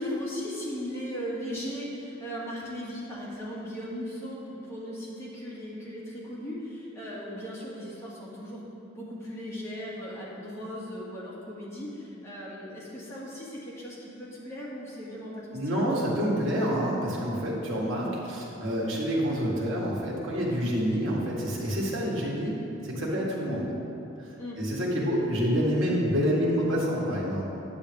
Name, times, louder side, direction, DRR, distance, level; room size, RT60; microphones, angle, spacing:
voice 1, 0.0-8.6 8.9-15.8 24.4-24.6, equal, 15° left, -8 dB, 2.0 m, -37 dB
voice 2, 15.5-23.8 24.2-24.3 24.6-27.4, equal, 70° right, -4 dB, 1.8 m, -27 dB
9.5 x 7.3 x 3.5 m, 3.0 s
head